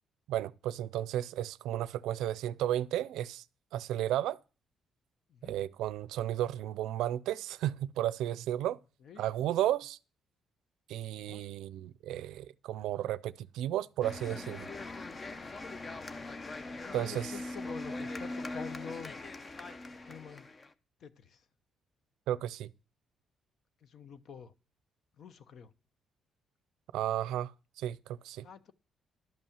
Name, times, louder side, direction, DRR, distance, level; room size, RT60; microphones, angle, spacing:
voice 1, 0.3-3.4 3.7-4.4 5.4-8.8 9.2-10.0 10.9-14.7 16.9-17.3 22.3-22.7 26.9-27.5 27.8-28.5, right 12 dB, 90° right, 0.4 m, -33 dB
voice 2, 11.1-11.4 16.7-19.2 20.0-20.5 21.0-21.4 23.8-24.5 25.2-25.7 28.4-28.7, left 7 dB, 60° left, 1.0 m, -47 dB
sound 1, 14.0-20.7, left 2 dB, 35° left, 0.8 m, -41 dB
12.0 x 5.6 x 7.2 m
cardioid pair, 90°, 0 cm